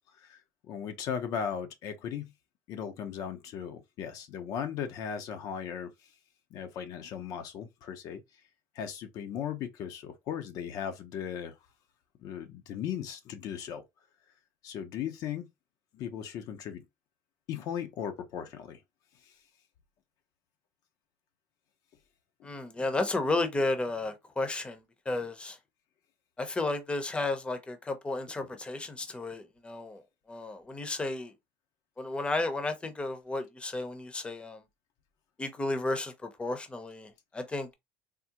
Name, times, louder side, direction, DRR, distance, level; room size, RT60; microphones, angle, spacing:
voice 1, 0.7-2.3 2.7-5.9 6.5-8.2 8.7-11.5 12.2-13.8 14.6-15.5 15.9-16.8 17.5-18.8 19.3-19.4 22.4-22.5, left 8 dB, 60° left, 0.6 m, -37 dB
voice 2, 22.4-25.6 26.4-30.0 30.3-31.3 32.0-34.6 35.4-37.7, left 2 dB, 15° left, 0.7 m, -33 dB
3.6 x 2.1 x 2.8 m
supercardioid pair, 95°, 7 cm